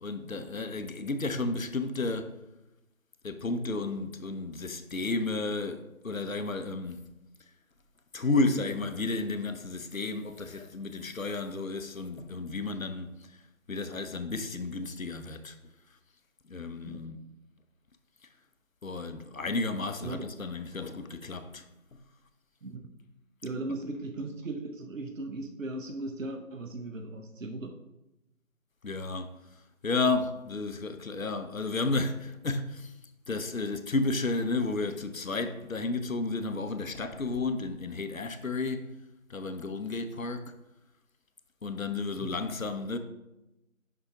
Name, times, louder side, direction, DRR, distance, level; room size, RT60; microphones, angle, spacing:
voice 1, 0.0-2.3 3.2-7.1 8.1-13.4 13.7-15.6 16.5-17.3 18.2-18.3 18.8-21.7 28.8-33.0 33.3-38.9 39.3-40.5 41.6-43.0, left 3 dB, 70° left, 0.7 m, -32 dB
voice 2, 23.4-27.8 42.2-42.4, right 2 dB, 65° right, 0.6 m, -37 dB
5.6 x 3.8 x 4.6 m
figure-of-eight pair, 175°, 42 cm